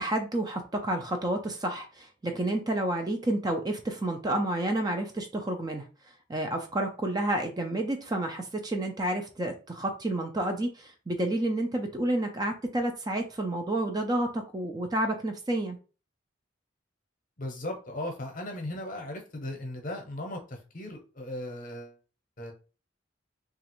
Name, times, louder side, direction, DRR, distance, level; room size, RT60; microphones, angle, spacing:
voice 1, 0.0-5.8 6.3-15.8, right 1 dB, 20° right, 5 dB, 0.4 m, -30 dB
voice 2, 17.4-22.0 22.4-22.5, left 1 dB, 45° left, 3 dB, 0.7 m, -37 dB
3.0 x 2.4 x 3.0 m, 0.35 s
head